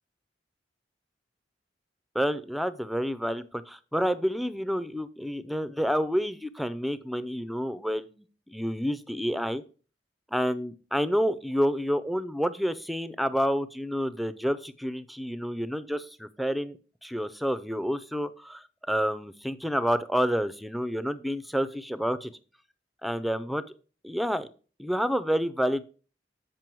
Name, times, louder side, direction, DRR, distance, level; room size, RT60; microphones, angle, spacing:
voice 1, 2.1-8.2 8.5-9.6 10.3-16.8 17.0-22.3 23.0-23.6 24.0-24.5 24.8-25.8, equal, ahead, 14 dB, 0.4 m, -29 dB
7.5 x 5.4 x 4.5 m, 0.38 s
head